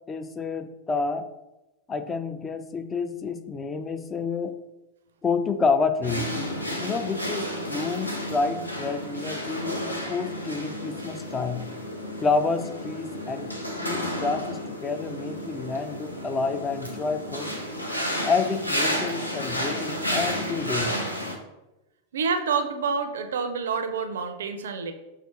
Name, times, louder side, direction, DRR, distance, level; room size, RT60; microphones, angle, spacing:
voice 1, 0.1-1.3 1.9-4.5 5.2-6.3 6.8-11.6 12.2-13.5 13.8-17.5 18.2-20.9, left 4 dB, 20° left, 9 dB, 0.3 m, -29 dB
sound 1, 6.0-21.3, equal, 85° left, 0.7 m, -31 dB
voice 2, 22.1-24.9, right 5 dB, 65° right, 8 dB, 0.4 m, -28 dB
5.7 x 2.9 x 3.1 m, 1.0 s
figure-of-eight pair, 90°, 0 cm